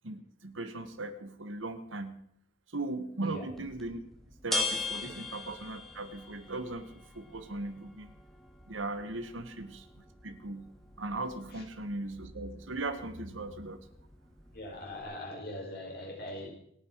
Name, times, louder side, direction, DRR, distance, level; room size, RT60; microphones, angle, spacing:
voice 1, 0.0-2.1 2.7-4.0 4.4-8.1 8.7-9.8 10.2-10.6 11.0-13.8, right 2 dB, 70° right, 9 dB, 1.6 m, -38 dB
sound 1, 3.5-15.0, left 3 dB, ahead, 2.6 m, -42 dB
voice 2, 14.5-16.5, left 1 dB, 50° left, -1 dB, 5.7 m, -41 dB
28.0 x 9.7 x 4.7 m, 0.69 s
head